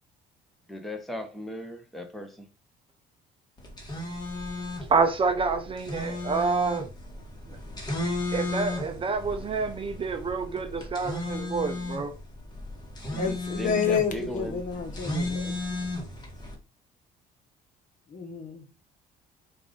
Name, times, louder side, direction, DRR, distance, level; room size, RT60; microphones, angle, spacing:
voice 1, 0.7-2.5 13.1-14.6, left 1 dB, ahead, 0.8 m, -37 dB
sound 1, 3.6-16.5, left 2 dB, 25° left, 1.5 m, -34 dB
voice 2, 4.9-6.9 8.3-12.1, right 4 dB, 30° right, 0.6 m, -27 dB
voice 3, 13.2-15.6 18.1-18.6, left 6 dB, 50° left, 1.1 m, -29 dB
4.6 x 2.6 x 3.7 m
cardioid pair, 110°, 17 cm